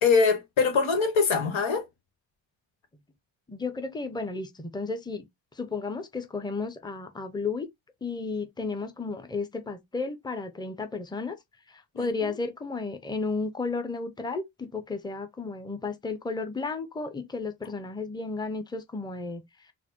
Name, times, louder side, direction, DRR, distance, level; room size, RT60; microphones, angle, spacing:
voice 1, 0.0-1.8 11.9-12.3, left 5 dB, 70° left, 1.4 m, -23 dB
voice 2, 3.5-5.2 5.6-7.7 8.0-11.4 11.7-19.4, left 4 dB, 10° left, 0.8 m, -33 dB
4.1 x 2.0 x 4.4 m
supercardioid pair, 45°, 49 cm